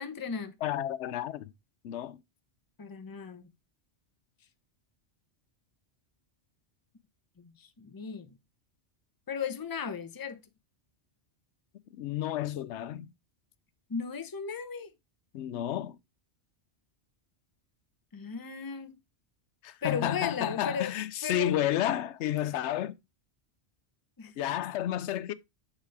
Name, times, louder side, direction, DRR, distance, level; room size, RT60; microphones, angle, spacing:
voice 1, 0.0-0.5 2.8-3.5 7.4-8.4 9.3-10.4 13.9-14.9 18.1-19.0 19.8-20.9 21.2-21.6 24.2-24.3, left 6 dB, 25° left, 0.6 m, -36 dB
voice 2, 0.6-1.5 1.8-2.2 11.9-13.1 15.3-16.0 19.6-23.0 24.4-25.3, left 11 dB, 85° left, 0.9 m, -31 dB
6.7 x 4.3 x 4.6 m
omnidirectional pair, 1.1 m